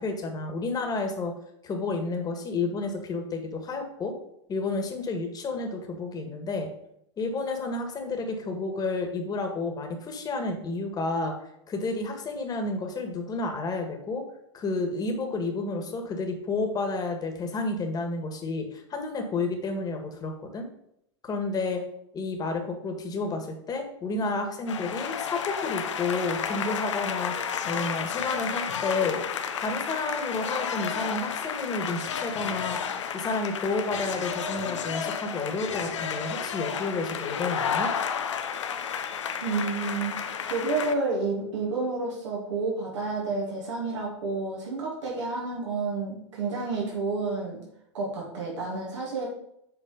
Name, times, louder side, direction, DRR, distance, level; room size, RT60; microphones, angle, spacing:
voice 1, 0.0-1.3 1.6-4.1 4.5-6.7 7.2-11.3 11.7-14.2 14.5-20.7 21.2-21.8 22.1-29.2 29.6-32.8 33.1-37.9, left 3 dB, 25° left, 4 dB, 1.7 m, -31 dB
sound 1, 24.7-40.9, left 7 dB, 90° left, 0.8 m, -31 dB
voice 2, 39.4-40.2 40.5-47.6 47.9-49.3, right 3 dB, 85° right, -4 dB, 2.8 m, -30 dB
7.5 x 4.3 x 5.1 m, 0.75 s
hypercardioid pair, 110°, 15 cm